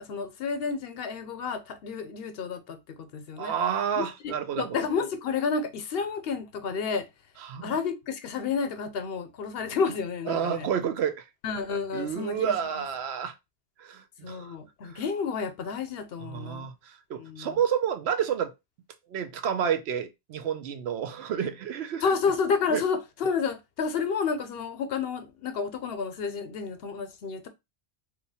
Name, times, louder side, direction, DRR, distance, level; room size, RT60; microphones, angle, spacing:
voice 1, 0.0-3.5 3.9-7.1 7.6-10.7 11.4-12.8 14.2-16.7 17.2-17.6 22.0-27.5, left 5 dB, 70° left, 0.8 m, -30 dB
voice 2, 3.4-4.8 7.4-7.7 10.3-11.2 11.9-13.3 13.8-14.5 14.9-15.0 16.3-18.5 19.1-22.0 22.7-22.8, right 8 dB, 80° right, 0.8 m, -30 dB
2.8 x 2.3 x 4.0 m
omnidirectional pair, 1.1 m